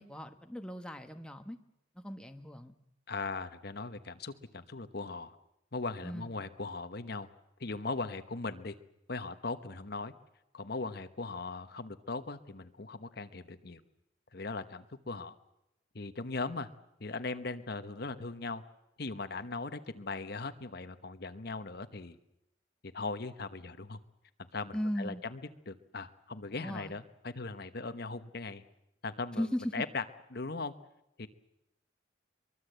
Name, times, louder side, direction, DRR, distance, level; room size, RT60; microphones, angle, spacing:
voice 1, 0.0-1.6 1.9-2.7 6.0-6.3 24.7-25.2 26.5-26.9 29.4-29.7, equal, 5° left, 5 dB, 1.2 m, -37 dB
voice 2, 3.1-5.4 5.7-7.3 7.6-8.8 9.1-10.1 10.5-13.8 14.3-15.4 15.9-16.7 17.0-18.6 19.0-22.2 22.8-24.0 24.5-25.4 25.7-28.6 29.0-29.4 29.7-30.0 30.3-30.7 31.2-31.3, left 3 dB, 55° left, 10 dB, 1.1 m, -39 dB
23.5 x 22.5 x 8.0 m, 0.86 s
head